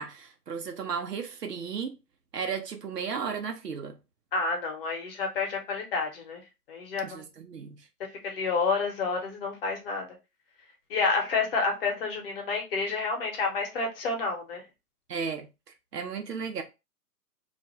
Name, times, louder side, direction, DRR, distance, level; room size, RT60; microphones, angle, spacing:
voice 1, 0.0-1.9 2.3-4.0 7.0-7.9 15.1-15.5 15.9-16.6, right 6 dB, 85° right, 0.8 m, -34 dB
voice 2, 4.3-6.4 6.7-7.2 8.2-10.0 10.9-14.6, left 4 dB, 40° left, 0.9 m, -29 dB
2.5 x 2.2 x 2.9 m
hypercardioid pair, 135°, 47 cm